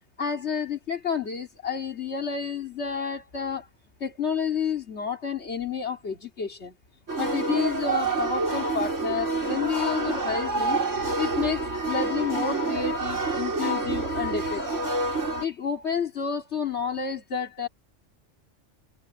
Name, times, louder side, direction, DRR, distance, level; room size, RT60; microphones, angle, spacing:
voice 1, 0.2-3.7 4.0-6.8 7.2-10.8 11.2-14.8 15.4-17.7, left 6 dB, 65° left, 2.7 m, -30 dB
sound 1, 7.1-15.5, right 3 dB, 85° right, 4.7 m, -27 dB
omnidirectional pair, 1.2 m